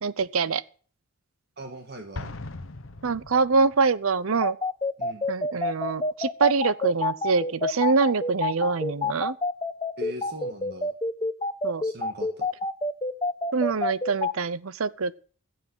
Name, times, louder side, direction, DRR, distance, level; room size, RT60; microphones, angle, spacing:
voice 1, 0.0-0.6 3.0-4.6 5.3-9.4 11.6-11.8 13.5-15.2, right 4 dB, 80° right, 0.7 m, -24 dB
voice 2, 1.6-2.3 5.0-5.3 10.0-10.9 11.8-12.5, right 1 dB, 50° right, 1.7 m, -40 dB
Explosion, 2.1-3.9, left 2 dB, 70° left, 1.0 m, -39 dB
sound 1, 4.4-14.3, left 3 dB, 20° left, 0.9 m, -27 dB
15.0 x 7.6 x 6.2 m
head